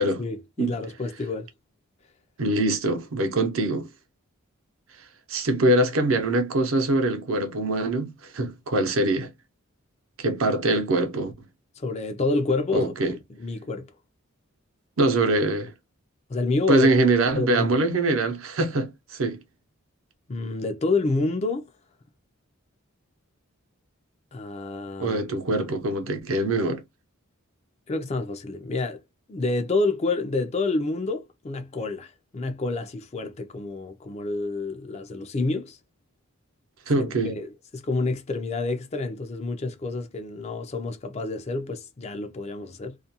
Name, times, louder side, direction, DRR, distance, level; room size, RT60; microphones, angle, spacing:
voice 1, 0.2-1.5 11.8-13.9 16.3-16.9 17.3-17.7 20.3-21.7 24.3-25.2 27.9-29.0 29.3-35.8 36.9-43.0, left 3 dB, 30° left, 0.4 m, -28 dB
voice 2, 2.4-3.9 5.3-9.3 10.2-11.3 12.7-13.1 15.0-15.7 16.7-19.4 25.0-26.8 36.9-37.3, right 2 dB, 70° right, 0.6 m, -23 dB
2.4 x 2.2 x 2.7 m
head